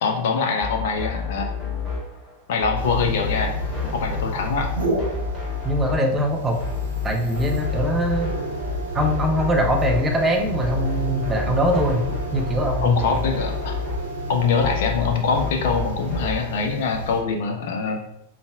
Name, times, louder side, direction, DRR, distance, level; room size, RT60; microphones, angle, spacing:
voice 1, 0.0-1.9 2.5-3.6 3.9-4.7 12.8-13.7 14.3-18.0, left 5 dB, 55° left, 3 dB, 0.4 m, -24 dB
sound 1, 0.6-16.6, left 5 dB, 15° left, 1.4 m, -30 dB
sound 2, 2.8-17.2, right 1 dB, 65° right, 0.9 m, -31 dB
voice 2, 5.6-6.6 7.0-8.3 8.9-12.1 12.3-13.2, equal, 15° right, 2 dB, 0.6 m, -22 dB
5.3 x 2.4 x 2.2 m, 0.76 s
figure-of-eight pair, 90°, 0 cm